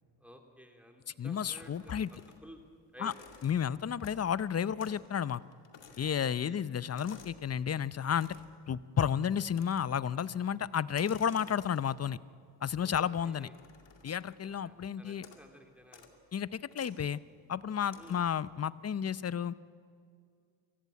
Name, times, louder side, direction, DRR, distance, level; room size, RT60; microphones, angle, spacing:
voice 1, 0.2-2.6 2.9-3.1 6.4-6.6 12.7-13.6 14.6-16.0 16.9-17.2 17.9-18.2, equal, 5° right, 3 dB, 3.0 m, -54 dB
voice 2, 1.2-2.1 3.0-3.1 3.4-5.4 6.0-8.3 8.7-12.2 12.6-13.5 14.0-15.3 16.3-17.2 17.5-19.5, left 8 dB, 35° left, 18 dB, 0.7 m, -32 dB
sound 1, 1.5-2.6 3.0-4.4 4.8-5.1 5.3-7.5 8.1-8.6 9.5-10.1 10.8-12.1 12.8-14.6 15.1-15.5 15.8-16.2 16.7-17.0 17.9-18.4, left 6 dB, 65° left, 2.4 m, -56 dB
24.0 x 14.5 x 9.5 m, 2.2 s
supercardioid pair, 55°, 47 cm